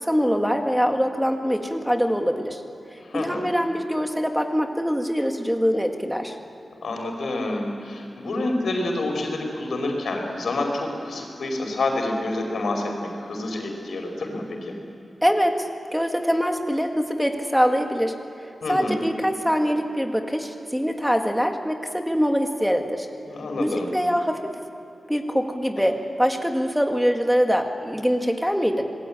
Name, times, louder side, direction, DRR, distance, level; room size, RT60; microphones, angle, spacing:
voice 1, 0.0-2.6 3.1-6.4 15.2-18.2 18.7-23.1 23.6-24.5 25.1-28.8, equal, ahead, 4 dB, 1.8 m, -23 dB
voice 2, 3.0-3.5 6.8-14.8 18.6-19.0 23.3-23.9 25.8-25.9, left 2 dB, 80° left, 2 dB, 5.2 m, -28 dB
27.0 x 20.5 x 8.9 m, 2.9 s
wide cardioid pair, 170°, 0 cm